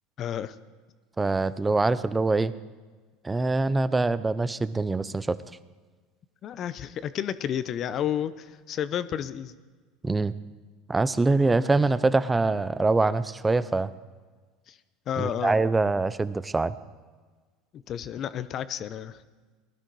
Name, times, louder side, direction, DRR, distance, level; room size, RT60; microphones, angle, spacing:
voice 1, 0.2-0.6 6.4-9.5 11.6-11.7 14.7-14.8 15.1-15.6 17.7-19.2, left 10 dB, 45° left, 15 dB, 0.8 m, -31 dB
voice 2, 1.2-2.5 3.2-5.4 10.0-10.3 10.9-13.9 15.2-16.7, right 3 dB, 15° right, 15 dB, 0.6 m, -24 dB
19.0 x 12.5 x 4.7 m, 1.4 s
hypercardioid pair, 95°, 0 cm